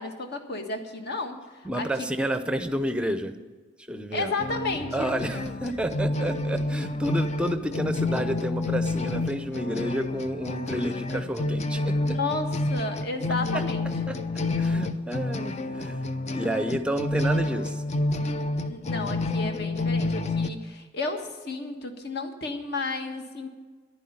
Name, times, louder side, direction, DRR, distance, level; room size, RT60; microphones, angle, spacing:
voice 1, 0.0-2.1 4.1-5.1 12.1-13.9 18.5-23.5, left 3 dB, 50° left, 6 dB, 1.5 m, -32 dB
voice 2, 1.6-3.3 3.9-4.3 4.9-12.0 14.1-14.2 14.6-17.8, equal, 5° right, 10 dB, 0.7 m, -30 dB
sound 1, 4.4-20.5, left 2 dB, 35° left, 0.6 m, -29 dB
11.0 x 9.8 x 8.7 m, 1.5 s
head